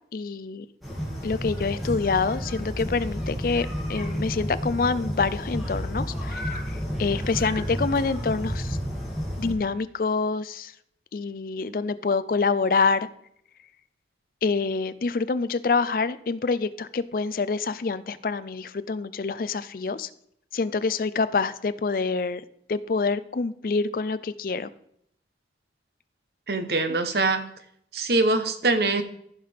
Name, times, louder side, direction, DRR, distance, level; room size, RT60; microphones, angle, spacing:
voice 1, 0.1-0.7 1.2-8.8 9.4-10.7 11.1-13.1 14.4-20.1 20.5-24.7 26.9-27.0, left 4 dB, 50° left, 15 dB, 0.4 m, -26 dB
sound 1, 0.8-9.5, equal, ahead, 2.3 m, -31 dB
voice 2, 26.5-27.4 27.9-29.0, right 3 dB, 65° right, 9 dB, 0.9 m, -23 dB
14.5 x 5.7 x 3.4 m, 0.69 s
head